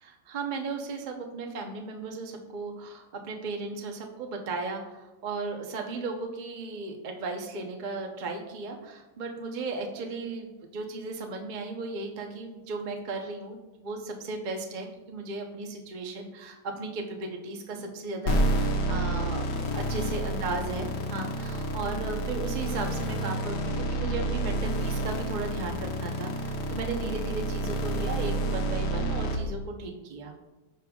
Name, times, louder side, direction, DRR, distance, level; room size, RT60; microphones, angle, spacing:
voice 1, 0.0-19.4 19.7-30.3, right 3 dB, 60° right, 3 dB, 0.4 m, -36 dB
sound 1, 18.3-29.4, right 1 dB, 60° left, 1.5 m, -29 dB
14.0 x 5.2 x 2.3 m, 1.1 s
omnidirectional pair, 2.2 m